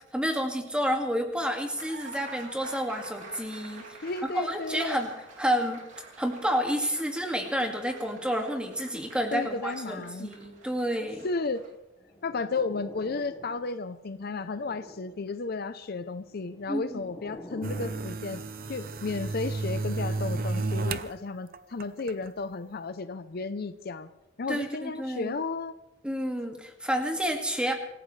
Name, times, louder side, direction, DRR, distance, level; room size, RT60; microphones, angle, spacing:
voice 1, 0.1-3.8 4.3-5.9 6.2-11.3 16.7-17.0 24.5-25.3 26.0-27.7, equal, 5° right, 3 dB, 2.0 m, -30 dB
Applause, 1.3-11.7, right 3 dB, 85° right, 2.8 m, -48 dB
voice 2, 4.0-5.0 9.3-10.3 11.2-11.6 12.2-18.4 18.7-24.1 24.4-25.7, left 3 dB, 50° left, 11 dB, 0.6 m, -33 dB
sound 1, 12.0-13.8 14.2-15.3 16.2-18.1, left 1 dB, 15° left, 1.6 m, -47 dB
sound 2, 17.6-21.1 21.5-22.3, right 3 dB, 50° right, 0.7 m, -32 dB
26.5 x 15.5 x 3.3 m, 0.93 s
head